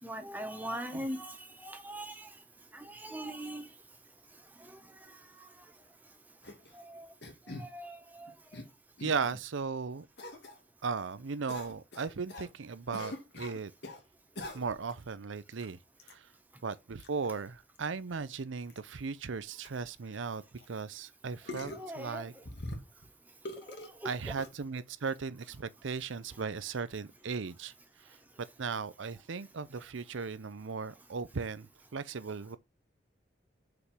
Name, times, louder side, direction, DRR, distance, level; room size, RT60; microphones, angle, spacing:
voice 1, 0.0-2.4 2.7-3.7 4.6-5.6 6.7-7.1 7.4-8.6 21.6-22.4 23.6-24.4, right 1 dB, 10° right, 1.4 m, -42 dB
sound 1, 6.4-6.7 7.2-7.7 8.3-8.7 9.0-9.4 10.2-10.6 11.5-12.5 12.9-14.0 14.4-14.9 15.5-15.6 16.0-16.1 17.0-17.1 17.8-17.9 18.1-18.2 18.7-18.8 19.4-19.5 19.6-19.7 20.6-20.7 21.4-21.9 22.4-23.1 23.4-23.9 24.4-24.5, left 1 dB, 60° left, 2.2 m, -43 dB
voice 2, 9.0-10.1 10.8-13.7 14.5-15.8 16.1-16.3 16.6-20.4 20.7-22.3 24.0-27.7 28.0-28.2 28.6-32.6, right 5 dB, 80° right, 0.6 m, -37 dB
6.7 x 5.1 x 6.0 m
head